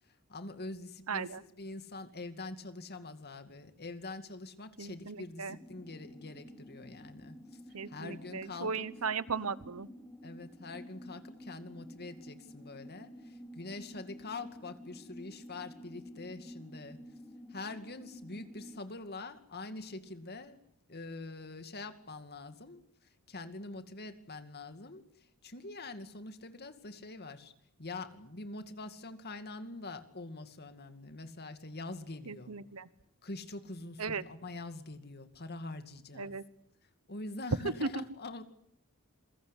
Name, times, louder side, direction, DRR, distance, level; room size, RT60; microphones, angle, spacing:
voice 1, 0.3-8.9 10.2-17.0 17.5-20.6 20.9-22.8 23.3-25.0 25.4-27.5 27.8-32.6 33.2-36.4 37.1-38.4, left 2 dB, 45° left, 9 dB, 2.4 m, -44 dB
voice 2, 1.1-1.4 4.8-5.6 7.7-9.9 32.3-32.9 34.0-34.2 36.2-36.4 37.6-38.0, right 4 dB, 75° right, 16 dB, 1.2 m, -36 dB
sound 1, 5.5-18.8, equal, 10° left, 2.6 m, -51 dB
28.0 x 22.0 x 8.4 m, 0.71 s
head